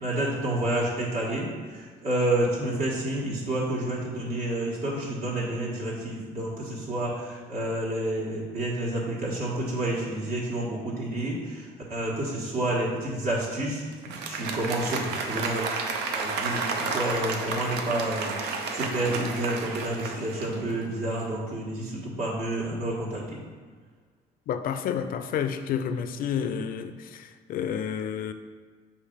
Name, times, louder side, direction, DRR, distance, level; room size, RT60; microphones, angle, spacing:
voice 1, 0.0-11.6 11.9-15.6 16.1-23.4, right 1 dB, 60° right, -6 dB, 1.5 m, -29 dB
Applause, 13.9-20.9, right 4 dB, 80° right, 0.6 m, -32 dB
voice 2, 24.5-28.3, left 8 dB, 60° left, 10 dB, 0.4 m, -30 dB
6.5 x 2.9 x 5.1 m, 1.5 s
cardioid pair, 110°, 17 cm